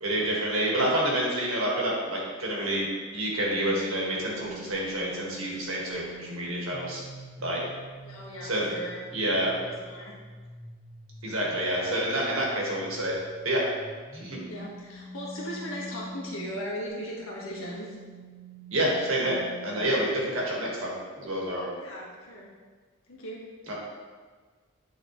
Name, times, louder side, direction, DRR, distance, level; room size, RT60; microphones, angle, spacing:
voice 1, 0.0-7.0 7.4-7.6 8.4-8.7 9.1-9.5 11.2-13.1 13.4-13.6 14.1-14.4 18.7-21.7 23.7-23.8, right 1 dB, 70° right, -4 dB, 1.7 m, -28 dB
sound 1, 3.5-16.6 17.2-19.8, equal, ahead, 0.6 m, -45 dB
voice 2, 8.0-9.0 9.5-10.2 11.4-12.1 14.5-17.9 21.8-22.5 23.1-23.4, equal, 70° left, -4 dB, 1.6 m, -38 dB
9.3 x 3.9 x 3.1 m, 1.5 s
head